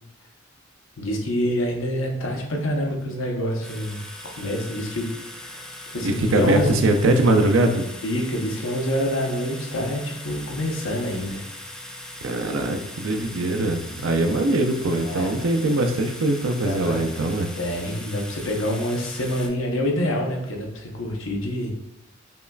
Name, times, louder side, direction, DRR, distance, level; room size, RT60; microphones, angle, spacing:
voice 1, 1.0-4.0 4.4-5.1 5.4-5.6 5.9-6.8 8.0-11.4 14.2-14.3 14.9-15.4 16.6-17.0 17.6-21.7, equal, 85° left, 1 dB, 0.7 m, -26 dB
sound 1, 3.6-19.5, left 1 dB, 5° left, 0.4 m, -40 dB
voice 2, 6.0-7.9 12.2-17.5, right 2 dB, 85° right, 6 dB, 0.4 m, -22 dB
5.3 x 2.3 x 2.2 m, 0.88 s
head